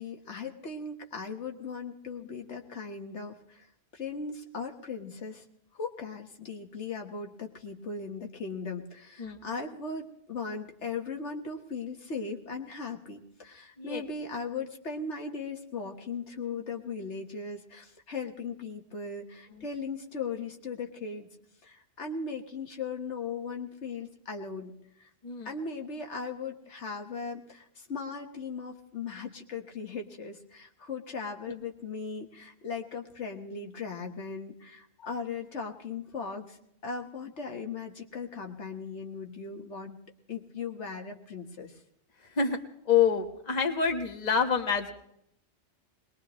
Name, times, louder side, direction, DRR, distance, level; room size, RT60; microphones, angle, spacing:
voice 1, 0.0-3.7 3.9-5.4 5.7-21.3 21.6-24.7 25.0-25.1 25.4-36.6 36.8-40.0 40.3-41.8, left 4 dB, 70° left, 3 dB, 1.6 m, -38 dB
voice 2, 9.2-9.5 13.8-14.0 19.5-19.6 25.2-25.5 42.2-42.6 42.8-44.9, left 6 dB, 35° left, 4 dB, 1.4 m, -27 dB
22.0 x 20.5 x 3.1 m, 0.73 s
omnidirectional pair, 1.2 m